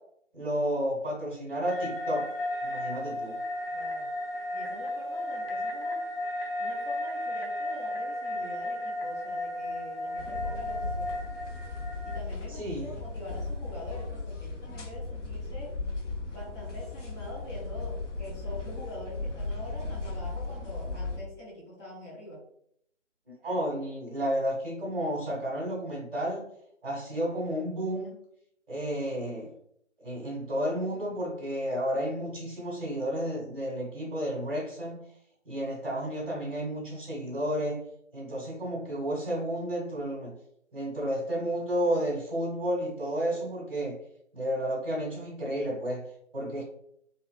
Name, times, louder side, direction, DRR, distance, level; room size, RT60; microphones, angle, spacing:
voice 1, 0.3-2.3 2.6-3.3 12.6-12.9 23.4-26.4 26.8-28.1 28.7-29.5 30.0-35.0 35.4-37.8 38.1-40.3 40.7-44.0 44.3-46.0 46.3-46.6, equal, 45° right, -6 dB, 1.4 m, -31 dB
sound 1, 1.7-12.2, left 1 dB, 50° left, 0.5 m, -34 dB
voice 2, 3.7-4.1 4.5-6.0 6.6-11.1 12.0-15.8 16.3-22.4, left 1 dB, 5° left, -14 dB, 0.9 m, -44 dB
sound 2, 10.2-21.2, left 3 dB, 75° left, 0.8 m, -36 dB
3.7 x 2.2 x 2.4 m, 0.70 s
figure-of-eight pair, 150°, 37 cm